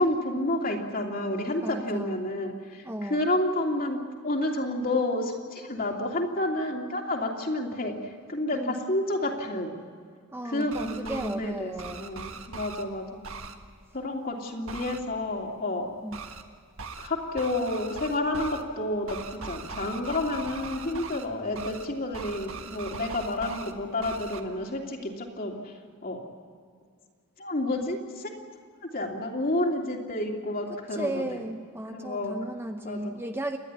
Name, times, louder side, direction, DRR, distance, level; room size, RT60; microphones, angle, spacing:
voice 1, 0.0-9.7 10.4-13.0 13.9-15.9 17.0-25.7 26.0-26.2 27.4-28.3 28.9-31.2 31.9-32.3 32.8-33.1, left 1 dB, 40° left, 1 dB, 3.0 m, -30 dB
voice 2, 1.6-2.2 2.8-3.3 8.5-8.7 10.3-12.1 16.0-16.2 30.9-33.6, right 1 dB, 10° right, 5 dB, 0.7 m, -35 dB
sound 1, 10.6-11.3 11.8-12.8 13.2-13.5 14.7-15.0 16.1-16.4 16.8-17.1 17.4-18.6 19.1-21.3 21.5-21.9 22.1-23.7 24.0-24.4, right 4 dB, 65° right, 1.6 m, -40 dB
29.5 x 11.5 x 9.7 m, 2.1 s
head